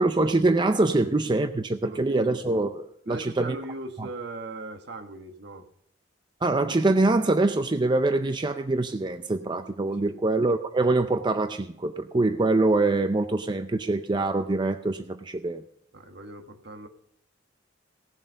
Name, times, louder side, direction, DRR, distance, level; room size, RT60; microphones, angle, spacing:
voice 1, 0.0-3.6 4.0-4.1 6.4-15.6, right 2 dB, 25° right, 9 dB, 0.5 m, -24 dB
voice 2, 1.8-2.3 3.0-5.6 9.9-10.2 15.9-16.9, right 2 dB, 60° right, 6 dB, 1.5 m, -39 dB
18.0 x 7.3 x 5.3 m, 0.72 s
head